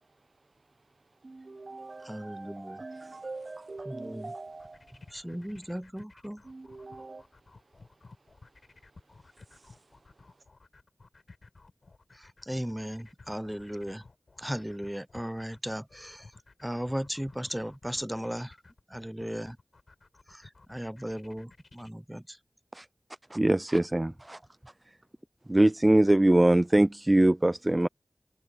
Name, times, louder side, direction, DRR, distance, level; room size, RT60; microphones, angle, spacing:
voice 1, 0.0-5.7 6.4-10.4, right 3 dB, 60° right, 0.8 m, -46 dB
voice 2, 2.1-2.8 3.9-4.2 5.1-6.4 12.5-14.0 14.4-16.2 16.6-18.6 18.9-19.6 20.3-20.4 20.7-22.4, equal, 5° right, 0.7 m, -36 dB
sound 1, 4.5-21.9, left 3 dB, 75° left, 4.4 m, -55 dB
voice 3, 23.3-24.4 25.5-27.9, right 1 dB, 25° right, 0.4 m, -22 dB
wide cardioid pair, 70°, 0 cm